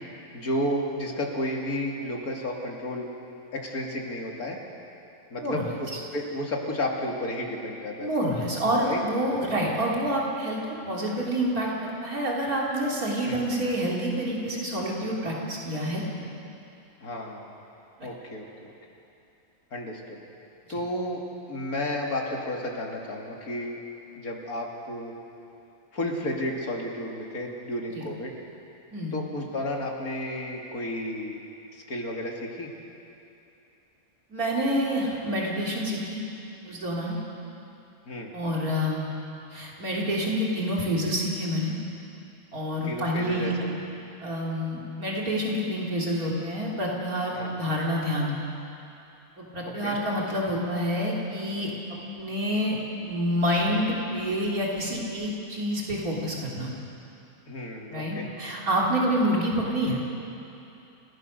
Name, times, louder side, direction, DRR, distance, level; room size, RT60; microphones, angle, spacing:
voice 1, 0.3-3.1 3.5-4.6 5.3-8.3 8.8-9.0 13.2-13.5 17.0-17.5 18.0-18.7 19.7-20.2 20.7-21.2 21.5-23.8 24.2-25.1 25.9-28.3 29.1-31.4 31.7-32.7 38.1-38.3 42.8-43.8 47.3-47.5 49.8-50.0 57.5-58.3, left 1 dB, 85° left, 0 dB, 2.9 m, -32 dB
voice 2, 8.0-10.6 10.9-16.0 18.0-18.1 20.7-20.8 27.9-28.1 28.9-29.2 34.3-36.2 36.6-37.2 38.3-39.1 39.5-41.8 42.5-43.5 44.2-48.4 49.5-51.7 52.1-52.8 53.0-56.7 57.9-60.0, equal, 80° right, -3 dB, 3.8 m, -27 dB
29.5 x 16.0 x 6.6 m, 2.8 s
omnidirectional pair, 1.5 m